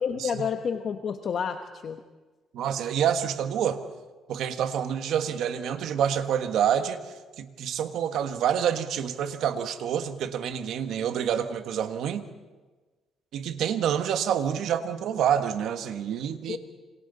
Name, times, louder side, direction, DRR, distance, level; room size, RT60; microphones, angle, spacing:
voice 1, 0.0-2.0 16.5-16.6, left 7 dB, 50° left, 6 dB, 1.1 m, -30 dB
voice 2, 2.5-3.8 4.3-12.2 13.3-16.6, right 9 dB, 75° right, 8 dB, 1.5 m, -27 dB
28.0 x 26.0 x 4.1 m, 1.3 s
cardioid pair, 120°, 0 cm